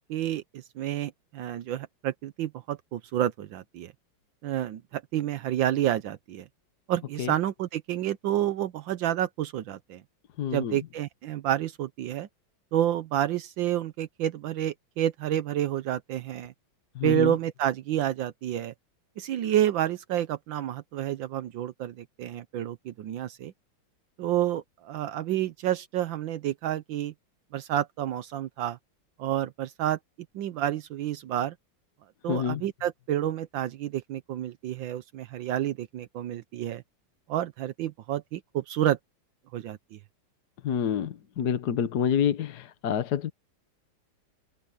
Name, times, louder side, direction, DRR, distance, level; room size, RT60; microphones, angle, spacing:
voice 1, 0.1-3.9 4.4-6.5 6.9-10.0 10.5-12.3 12.7-16.5 17.0-18.7 19.2-23.5 24.2-27.1 27.5-28.8 29.2-30.0 30.3-31.5 32.2-36.8 37.3-39.0 39.5-40.0, right 11 dB, 75° right, 1.5 m, -29 dB
voice 2, 10.4-10.8 16.9-17.3 32.3-32.6 40.6-43.3, left 8 dB, 60° left, 1.6 m, -28 dB
omnidirectional pair, 2.1 m